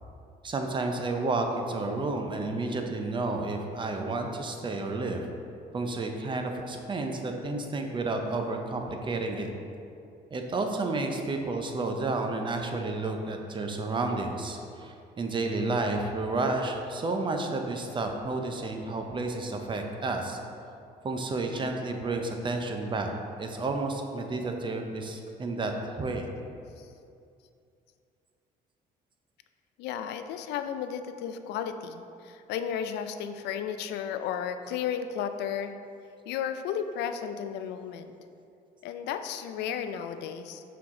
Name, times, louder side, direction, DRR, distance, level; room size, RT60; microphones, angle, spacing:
voice 1, 0.4-5.3 5.7-9.5 10.3-20.4 21.0-23.1 23.4-26.3, right 2 dB, 30° right, 4 dB, 0.6 m, -31 dB
voice 2, 29.8-35.8 36.3-38.1 38.8-40.6, left 8 dB, 80° left, 9 dB, 0.4 m, -33 dB
6.0 x 4.6 x 3.7 m, 2.5 s
cardioid pair, 110°, 17 cm